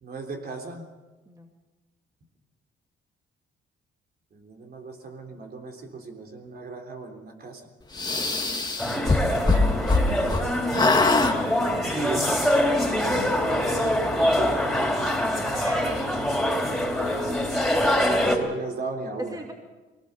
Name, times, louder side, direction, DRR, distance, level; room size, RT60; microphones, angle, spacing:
voice 1, 0.0-0.9 4.3-7.6 10.6-12.4 13.8-13.9 14.3-14.6 18.2-19.5, right 3 dB, 50° right, 2 dB, 3.5 m, -37 dB
sound 1, 8.0-10.4 10.7-11.3, left 3 dB, 20° left, 1.9 m, -22 dB
voice 2, 8.0-8.6 10.1-10.6 15.5-16.7 19.2-19.5, right 2 dB, 20° right, 2 dB, 2.4 m, -38 dB
sound 2, 8.8-18.4, left 1 dB, ahead, 3.9 m, -24 dB
21.5 x 18.5 x 6.9 m, 1.2 s
cardioid pair, 90°, 20 cm